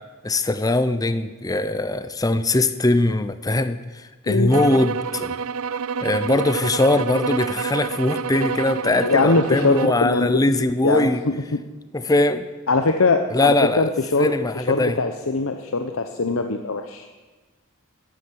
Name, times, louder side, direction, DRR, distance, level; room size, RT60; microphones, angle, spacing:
voice 1, 0.2-3.8 4.3-5.3 6.0-11.2 11.9-12.5 13.3-13.9 14.2-15.0, left 2 dB, 15° left, 12 dB, 0.6 m, -21 dB
sound 1, 4.5-10.0, right 6 dB, 80° right, 0.5 m, -28 dB
voice 2, 9.0-10.4 10.8-11.6 12.7-17.1, left 3 dB, 70° left, 6 dB, 0.9 m, -22 dB
14.5 x 10.0 x 8.6 m, 1.3 s
head